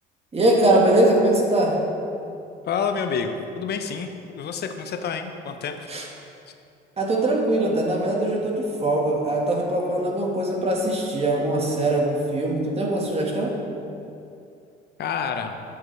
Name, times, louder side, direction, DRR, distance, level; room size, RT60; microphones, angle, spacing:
voice 1, 0.3-1.9 5.9-6.1 7.0-13.6, right 1 dB, 30° right, -1 dB, 1.6 m, -22 dB
voice 2, 2.7-4.1 4.3-5.8 15.0-15.6, left 6 dB, 55° left, 6 dB, 0.8 m, -28 dB
11.0 x 5.8 x 3.3 m, 2.6 s
supercardioid pair, 75°, 21 cm